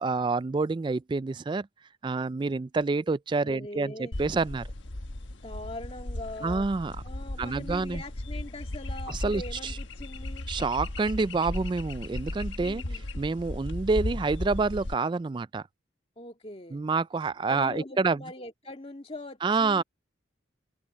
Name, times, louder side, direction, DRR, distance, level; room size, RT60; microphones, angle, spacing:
voice 1, 0.0-1.7 2.0-4.7 6.4-7.0 7.4-8.0 9.1-9.4 10.5-12.8 13.2-15.6 16.7-18.2 19.4-19.8, right 4 dB, 25° right, 0.3 m, -28 dB
voice 2, 3.4-4.1 5.3-6.7 7.0-10.5 12.6-13.0 16.2-16.8 17.5-19.8, left 1 dB, 30° left, 2.0 m, -42 dB
sound 1, 4.1-14.9, left 1 dB, 85° left, 1.3 m, -36 dB
head